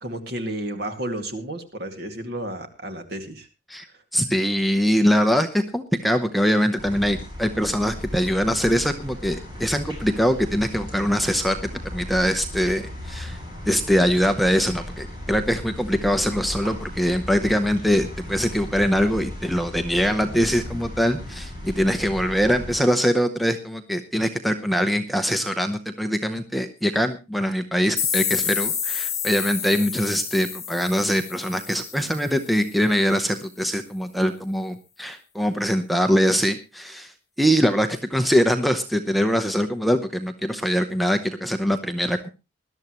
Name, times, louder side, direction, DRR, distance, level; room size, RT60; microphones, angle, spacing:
voice 1, 0.0-3.5, right 1 dB, 50° right, 6 dB, 2.2 m, -32 dB
voice 2, 4.1-11.6 11.9-13.4 13.7-37.1 37.4-42.3, equal, ahead, 7 dB, 0.8 m, -23 dB
sound 1, 6.8-22.7, left 1 dB, 20° right, 6.3 m, -36 dB
sound 2, 28.0-32.6, left 7 dB, 15° left, 4.3 m, -29 dB
20.5 x 12.0 x 3.1 m, 0.29 s
head